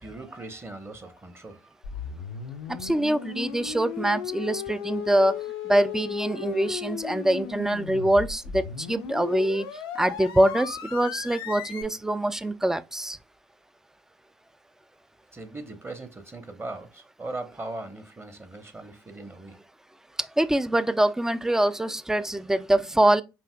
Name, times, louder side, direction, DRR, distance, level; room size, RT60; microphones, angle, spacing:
voice 1, 0.0-1.8 15.3-19.6, right 2 dB, 20° right, 1.0 m, -39 dB
sound 1, 1.8-11.8, left 8 dB, 85° left, 0.5 m, -36 dB
voice 2, 2.8-9.7 10.0-13.2 20.2-23.2, right 1 dB, 5° right, 0.3 m, -24 dB
5.4 x 2.5 x 2.2 m
hypercardioid pair, 60°, 12 cm